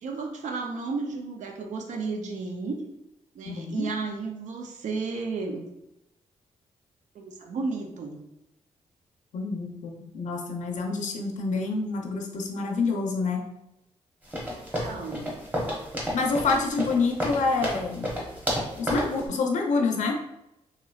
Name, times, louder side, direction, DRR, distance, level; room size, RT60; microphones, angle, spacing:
voice 1, 0.0-2.8 3.3-5.6 7.1-8.2 14.8-15.4, right 4 dB, 75° right, 3 dB, 0.5 m, -33 dB
voice 2, 3.5-3.8 9.3-13.4 16.1-18.1 18.8-20.2, left 4 dB, 75° left, 2 dB, 0.6 m, -27 dB
sound 1, 14.3-19.2, equal, 10° right, 1.0 m, -31 dB
3.0 x 2.9 x 2.3 m, 0.88 s
cardioid pair, 95°, 13 cm